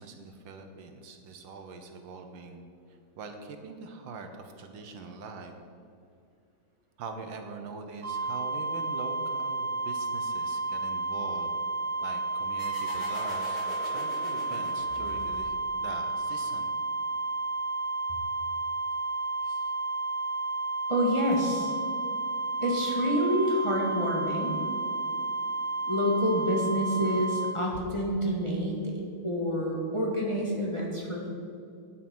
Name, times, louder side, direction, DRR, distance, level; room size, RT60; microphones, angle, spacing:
voice 1, 0.0-2.7 3.2-5.6 7.0-11.5 12.0-16.7 19.4-19.7, right 4 dB, 70° right, 5 dB, 1.6 m, -43 dB
sound 1, 8.0-27.5, right 3 dB, 45° right, 3.0 m, -32 dB
sound 2, 12.6-15.9, left 1 dB, 75° left, 3.5 m, -42 dB
voice 2, 20.9-21.8 22.6-24.6 25.9-31.3, equal, 15° left, -2 dB, 1.3 m, -28 dB
9.7 x 8.1 x 6.1 m, 2.4 s
omnidirectional pair, 2.2 m